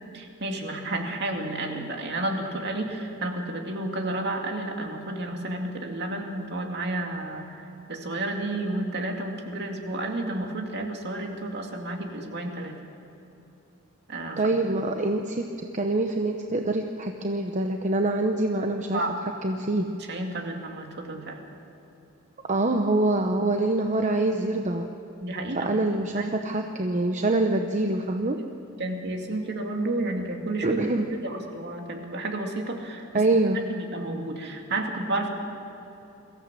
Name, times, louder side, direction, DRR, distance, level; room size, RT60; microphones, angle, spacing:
voice 1, 0.1-12.8 14.1-14.4 18.9-19.2 19.8-21.4 25.2-25.7 26.1-26.3 26.8-27.0 28.8-33.3 33.7-35.3, right 2 dB, 55° right, 2 dB, 2.4 m, -31 dB
voice 2, 14.4-15.4 15.7-19.0 19.4-19.9 22.5-24.9 25.6-28.4 30.6-31.1 33.1-33.6, right 2 dB, 35° right, 4 dB, 0.9 m, -25 dB
23.0 x 15.0 x 7.5 m, 3.0 s
head